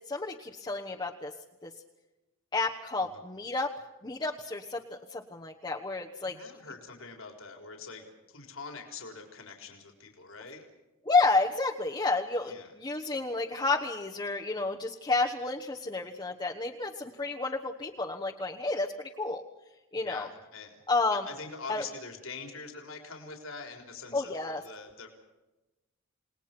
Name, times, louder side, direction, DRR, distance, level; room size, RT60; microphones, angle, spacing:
voice 1, 0.1-1.3 1.6-1.7 2.5-3.7 4.0-4.8 5.1-6.4 11.0-19.4 19.9-20.3 20.9-21.3 21.7-21.8 24.1-24.6, left 3 dB, 20° left, 0 dB, 1.2 m, -30 dB
voice 2, 6.2-10.6 12.5-12.7 19.9-20.8 21.1-25.1, left 4 dB, 80° left, 3 dB, 4.0 m, -44 dB
29.0 x 19.5 x 6.0 m, 1.0 s
head